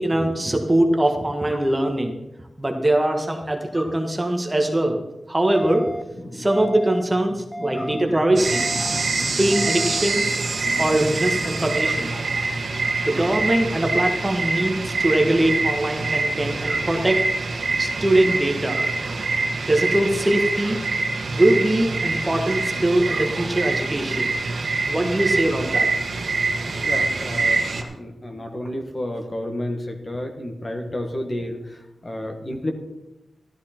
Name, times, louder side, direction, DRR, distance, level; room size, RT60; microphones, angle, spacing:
voice 1, 0.0-2.2 2.6-5.0 5.3-5.9 6.3-8.7 9.2-10.3 10.8-12.1 13.0-17.2 17.7-18.8 19.6-20.8 21.3-24.3 24.9-25.9, right 1 dB, 15° right, 3 dB, 1.3 m, -22 dB
sound 1, 5.5-6.0 6.5-7.0 7.5-8.0 8.5-9.0 9.5-10.0, equal, ahead, 0.5 m, -33 dB
voice 2, 7.3-8.2 8.7-9.5 10.6-11.0 11.8-12.6 16.6-17.1 18.7-19.5 23.1-23.7 25.5-25.6 26.9-32.7, left 1 dB, 30° left, 3 dB, 1.5 m, -33 dB
sound 2, 8.4-27.8, right 3 dB, 60° right, 1.3 m, -25 dB
13.0 x 12.5 x 4.4 m, 0.97 s
wide cardioid pair, 145°, 0 cm